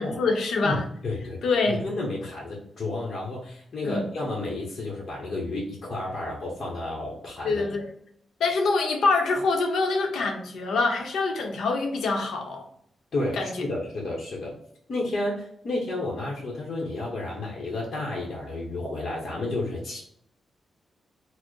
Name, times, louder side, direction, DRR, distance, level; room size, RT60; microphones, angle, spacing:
voice 1, 0.0-0.8 1.4-1.8 3.8-4.0 7.4-7.9 8.4-12.7 13.3-13.5, left 3 dB, 85° left, 3 dB, 0.7 m, -25 dB
voice 2, 0.6-1.4 1.7-7.7 13.1-14.5 14.9-20.0, left 2 dB, 45° left, -4 dB, 0.9 m, -31 dB
4.2 x 2.0 x 3.1 m, 0.68 s
wide cardioid pair, 165°, 0 cm